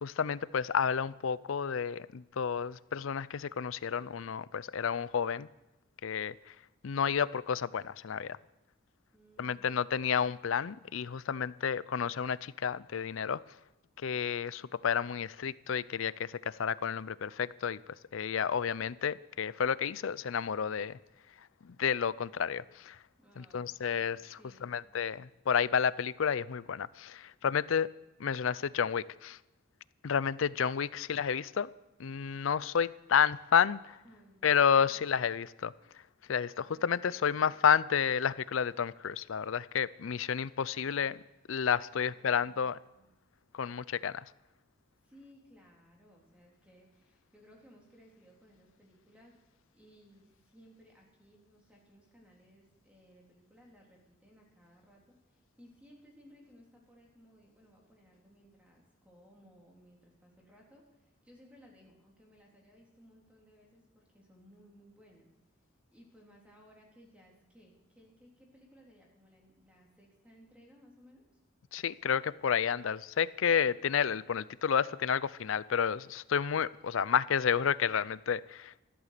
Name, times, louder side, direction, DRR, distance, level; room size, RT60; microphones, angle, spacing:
voice 1, 0.0-5.5 6.0-6.5 6.8-8.4 9.4-13.4 14.0-17.8 18.1-21.0 21.6-23.0 23.4-27.9 28.2-29.4 30.0-31.7 32.0-34.0 34.4-35.7 36.3-41.2 41.5-42.8 43.5-44.2 71.7-78.8, left 7 dB, 70° left, 19 dB, 0.5 m, -31 dB
voice 2, 9.1-10.1 23.2-24.1 24.4-24.7 34.0-35.1 36.6-37.5 41.9-43.1 45.0-49.4 49.7-65.3 65.9-71.2, equal, 5° right, -2 dB, 3.5 m, -60 dB
14.0 x 12.5 x 6.7 m, 0.97 s
head